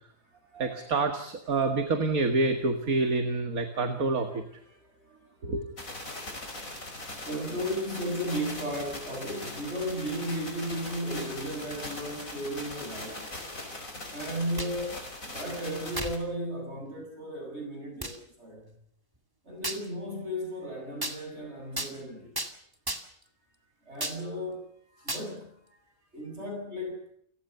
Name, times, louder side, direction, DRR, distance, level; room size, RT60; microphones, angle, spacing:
voice 1, 0.5-4.4 5.4-5.6, right 3 dB, 70° right, 2.3 m, -27 dB
voice 2, 4.7-5.3 7.0-13.3 14.1-18.8 19.4-22.4 23.8-25.8 26.1-27.0, equal, 45° right, 8.5 m, -35 dB
sound 1, 5.8-16.2, left 1 dB, 60° left, 5.9 m, -40 dB
sound 2, 14.6-14.8 15.9-16.2 16.8-16.9 18.0-18.2 19.6-19.9 21.0-21.2 21.8-21.9 22.4-22.5 22.9-23.2 24.0-24.2 25.1-25.3, right 1 dB, 15° right, 2.1 m, -34 dB
29.5 x 17.0 x 6.9 m
omnidirectional pair, 1.6 m